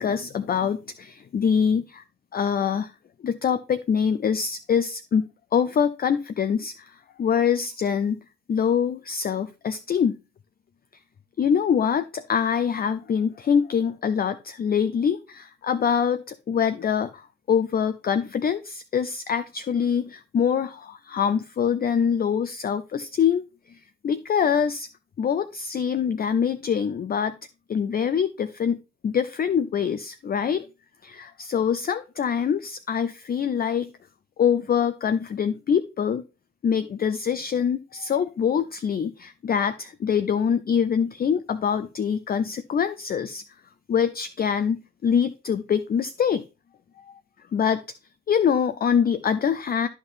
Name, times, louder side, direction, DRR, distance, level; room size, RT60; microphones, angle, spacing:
voice 1, 0.0-2.0 2.3-2.9 3.2-8.2 8.5-10.1 11.4-17.2 17.5-23.4 24.0-24.9 25.2-27.4 27.7-28.8 29.0-30.7 31.0-33.9 34.4-36.2 36.6-43.4 43.9-46.4 47.5-47.8 48.3-49.9, left 7 dB, 30° left, 0.5 m, -24 dB
11.0 x 5.8 x 2.6 m
figure-of-eight pair, 40°, 34 cm